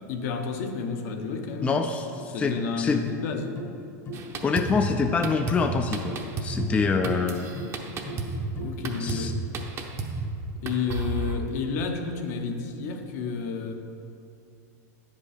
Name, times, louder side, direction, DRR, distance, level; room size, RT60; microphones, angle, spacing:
voice 1, 0.1-1.8 2.3-3.6 6.6-6.8 8.4-9.4 10.6-13.7, left 5 dB, 65° left, 4 dB, 0.9 m, -31 dB
voice 2, 1.6-3.0 4.4-7.5 9.0-9.3, left 4 dB, 15° left, 5 dB, 0.3 m, -26 dB
sound 1, 2.2-9.5, left 1 dB, 30° left, 0.9 m, -39 dB
Drum kit, 4.1-11.4, right 3 dB, 30° right, 0.7 m, -33 dB
9.2 x 5.3 x 5.0 m, 2.5 s
supercardioid pair, 130°, 9 cm